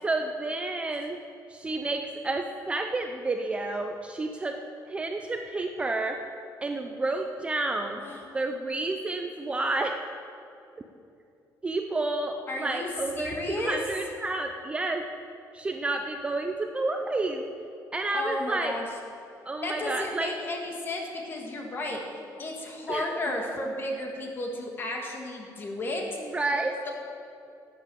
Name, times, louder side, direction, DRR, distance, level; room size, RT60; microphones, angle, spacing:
voice 1, 0.0-1.2 1.5-4.6 4.9-6.2 6.6-8.0 8.3-10.0 11.6-15.0 15.5-17.5 17.9-18.7 19.5-20.3 22.9-23.0 26.3-26.8, right 2 dB, 15° right, 5 dB, 0.5 m, -30 dB
voice 2, 12.5-12.9 13.2-13.8 18.1-18.9 19.6-22.0 22.4-26.9, left 2 dB, 30° left, 1 dB, 1.9 m, -33 dB
12.0 x 8.6 x 7.6 m, 2.5 s
cardioid pair, 170°, 7 cm